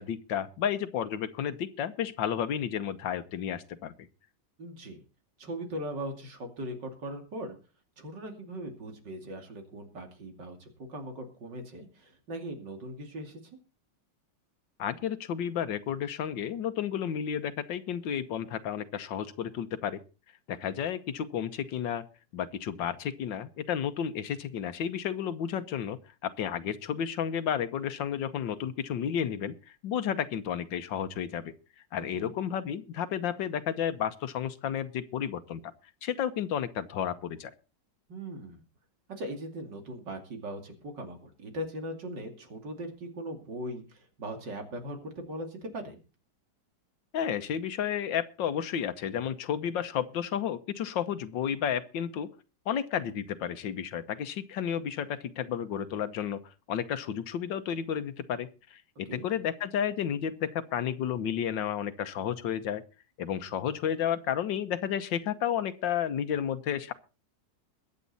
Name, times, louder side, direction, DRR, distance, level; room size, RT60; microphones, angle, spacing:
voice 1, 0.0-3.9 14.8-20.0 20.5-22.0 22.3-29.5 29.8-31.5 31.9-35.6 36.0-37.5 47.1-52.3 52.7-56.4 56.7-62.8 63.2-66.9, left 9 dB, 90° left, 11 dB, 1.7 m, -32 dB
voice 2, 4.6-5.0 5.4-7.6 8.0-13.4 32.1-32.3 38.1-38.6 39.2-46.0 59.1-59.3, right 1 dB, 70° right, 4 dB, 3.2 m, -39 dB
22.0 x 8.3 x 4.1 m, 0.33 s
omnidirectional pair, 1.9 m